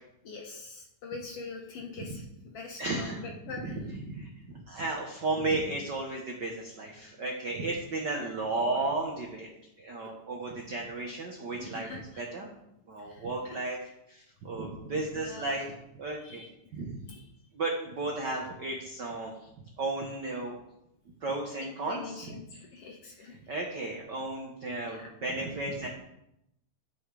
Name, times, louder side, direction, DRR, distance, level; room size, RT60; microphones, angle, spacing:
voice 1, 0.2-2.3 2.5-3.8 8.1-8.7 11.6-12.2 13.0-13.2 15.2-15.6 16.2-16.5 17.1-17.2 21.9-23.4 24.8-25.1, left 4 dB, 60° left, 1 dB, 1.7 m, -43 dB
voice 2, 2.8-3.2 3.6-9.5 9.8-11.9 12.2-12.5 12.9-13.8 14.1-17.0 17.5-20.6 21.2-22.4 23.2-25.9, right 2 dB, 70° right, 0 dB, 1.0 m, -34 dB
11.0 x 6.1 x 4.9 m, 0.83 s
omnidirectional pair, 3.7 m